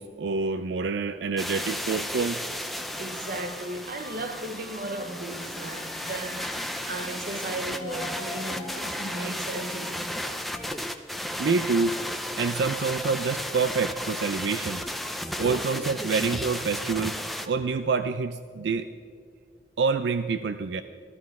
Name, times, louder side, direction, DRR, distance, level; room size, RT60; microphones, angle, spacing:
voice 1, 0.0-2.5 11.4-12.0 12.4-14.8 15.4-17.2 17.5-18.9 19.8-20.8, right 4 dB, 75° right, 0.4 m, -27 dB
sound 1, 1.4-17.5, equal, ahead, 0.5 m, -34 dB
sound 2, 2.9-12.3, left 2 dB, 15° left, 1.6 m, -45 dB
voice 2, 2.9-6.6 6.9-10.5, right 2 dB, 50° right, 0.7 m, -36 dB
14.5 x 14.0 x 4.7 m
head